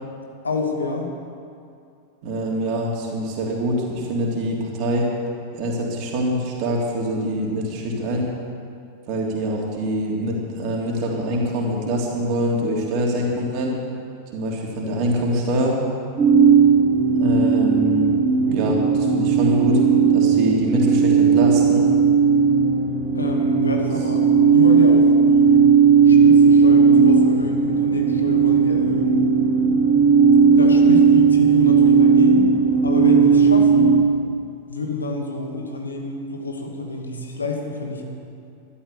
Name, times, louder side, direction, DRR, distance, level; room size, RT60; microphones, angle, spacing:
voice 1, 0.4-1.1 23.1-25.6 26.0-29.2 30.3-32.5 32.8-33.9 34.7-38.0, left 2 dB, 75° left, 2 dB, 2.0 m, -28 dB
voice 2, 2.2-5.1 5.5-8.3 9.1-13.8 14.3-15.8 17.1-18.1 18.5-19.8 20.1-21.9, equal, 40° right, -1 dB, 3.3 m, -24 dB
sound 1, 16.2-34.0, right 6 dB, 20° right, 2.7 m, -16 dB
13.5 x 12.5 x 6.8 m, 2.4 s
figure-of-eight pair, 90°, 0 cm